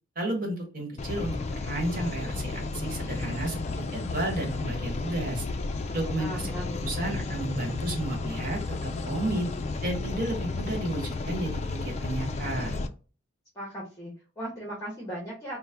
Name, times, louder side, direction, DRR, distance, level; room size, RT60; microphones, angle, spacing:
voice 1, 0.1-5.4 5.9-6.5 6.8-9.5 9.8-12.8, right 1 dB, 45° right, 0 dB, 1.2 m, -32 dB
sound 1, 1.0-12.9, left 3 dB, 30° left, 0.3 m, -33 dB
voice 2, 6.2-6.9 13.5-15.6, equal, 15° left, -4 dB, 1.1 m, -37 dB
4.2 x 2.1 x 3.4 m, 0.36 s
head